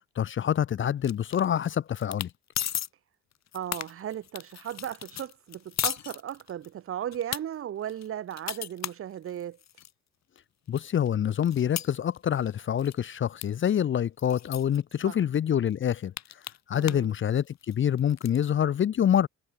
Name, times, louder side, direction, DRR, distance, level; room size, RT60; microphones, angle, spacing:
voice 1, 0.2-2.3 10.7-16.1 16.7-19.3, left 9 dB, 40° left, 0.6 m, -26 dB
sound 1, 1.0-1.7 2.0-2.3 2.6-2.9 3.3-6.7 7.1-7.4 7.9-9.9 10.4-10.5 10.8-12.5 12.8-13.0 13.4-13.5 13.7-13.8 14.2-14.8 15.3-15.4 15.7-17.1 17.4-18.4, left 11 dB, 60° left, 1.7 m, -36 dB
voice 2, 3.5-9.6 15.0-15.2 16.7-17.1, right 10 dB, 45° right, 0.7 m, -36 dB
cardioid pair, 90°, 30 cm